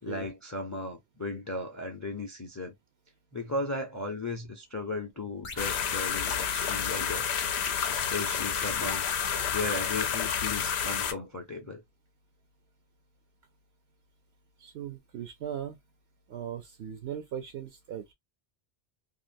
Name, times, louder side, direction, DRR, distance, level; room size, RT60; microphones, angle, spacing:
voice 1, 0.0-2.7 3.3-7.3 7.9-9.1 9.5-11.8, left 2 dB, 20° left, 0.5 m, -36 dB
sound 1, 5.4-7.4 8.9-10.7, left 4 dB, 50° left, 0.9 m, -46 dB
sound 2, 5.6-11.1, left 7 dB, 75° left, 0.8 m, -30 dB
voice 2, 14.6-15.8 16.3-18.1, right 9 dB, 70° right, 0.9 m, -38 dB
2.9 x 2.5 x 2.5 m
omnidirectional pair, 1.1 m